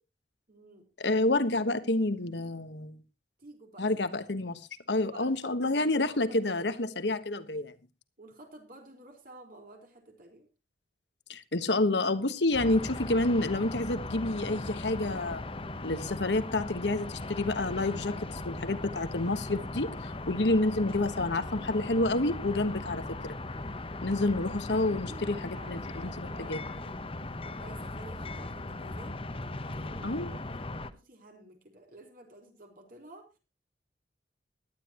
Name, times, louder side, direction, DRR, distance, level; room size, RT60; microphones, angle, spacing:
voice 1, 0.5-0.9 3.4-3.9 4.9-5.5 5.9-6.6 8.2-10.5 24.2-24.5 25.0-27.0 27.4-33.4, right 2 dB, 55° right, 3 dB, 4.6 m, -52 dB
voice 2, 1.0-3.0 3.8-7.7 11.3-15.4 15.8-23.4 24.0-25.4 25.7-26.6 30.0-30.3, left 2 dB, 70° left, 11 dB, 1.4 m, -29 dB
sound 1, 12.5-30.9, left 2 dB, 30° left, 1.0 m, -38 dB
17.5 x 12.0 x 3.0 m, 0.29 s
head